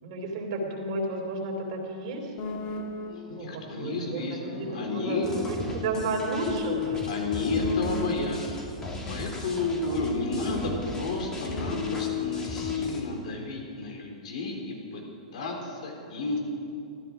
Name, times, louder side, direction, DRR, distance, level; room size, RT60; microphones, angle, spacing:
voice 1, 0.0-2.3 3.3-7.0 7.3-7.6, right 2 dB, 55° right, 1 dB, 3.3 m, -32 dB
sound 1, 2.4-3.5 4.2-8.7 9.5-12.9, left 7 dB, 40° left, 1.6 m, -35 dB
voice 2, 2.9-5.3 7.1-15.0 15.3-16.4, left 3 dB, 65° left, 0 dB, 3.9 m, -32 dB
sound 2, 5.2-13.0, equal, 15° left, 2.4 m, -38 dB
14.5 x 13.0 x 6.2 m, 2.6 s
hypercardioid pair, 120°, 4 cm